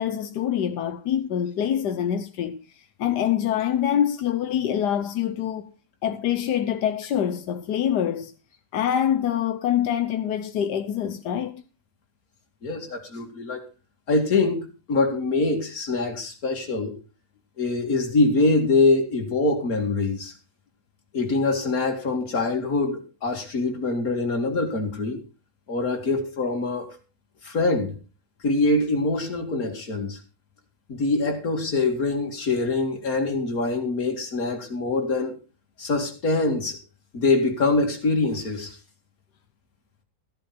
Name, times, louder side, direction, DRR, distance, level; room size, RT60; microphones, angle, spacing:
voice 1, 0.0-2.6 3.0-5.7 6.0-8.3 8.7-11.6, left 10 dB, 90° left, 1.5 m, -25 dB
voice 2, 12.6-13.6 14.1-16.9 17.6-20.3 21.1-25.2 25.7-27.0 27.4-28.0 28.4-30.2 30.9-35.4 35.8-36.8 37.1-38.8, left 3 dB, 60° left, 2.9 m, -24 dB
14.5 x 10.5 x 4.3 m
omnidirectional pair, 1.7 m